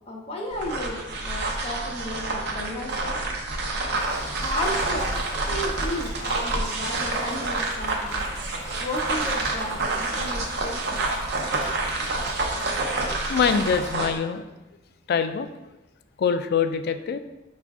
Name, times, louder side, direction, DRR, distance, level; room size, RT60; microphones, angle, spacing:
voice 1, 0.1-3.2 4.4-8.2 8.8-11.1 11.8-11.9, left 1 dB, 30° left, -1 dB, 0.7 m, -34 dB
sound 1, 0.5-14.2, right 2 dB, 65° right, 0.6 m, -28 dB
Stream, 4.0-13.9, right 1 dB, 20° right, 0.7 m, -42 dB
voice 2, 13.3-14.4 15.1-15.5 16.2-17.2, left 6 dB, 55° left, 9 dB, 0.3 m, -24 dB
5.0 x 2.4 x 3.5 m, 0.99 s
head